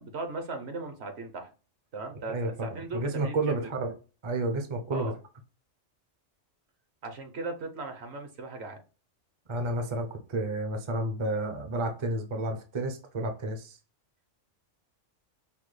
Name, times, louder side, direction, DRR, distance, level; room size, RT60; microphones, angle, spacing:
voice 1, 0.0-1.5 1.9-3.7 4.9-5.1 7.0-8.8, right 3 dB, 60° right, 5 dB, 1.0 m, -38 dB
voice 2, 2.3-3.9 4.2-5.1 9.5-13.8, right 2 dB, 35° right, 5 dB, 0.5 m, -31 dB
5.4 x 2.2 x 3.2 m, 0.35 s
omnidirectional pair, 1.3 m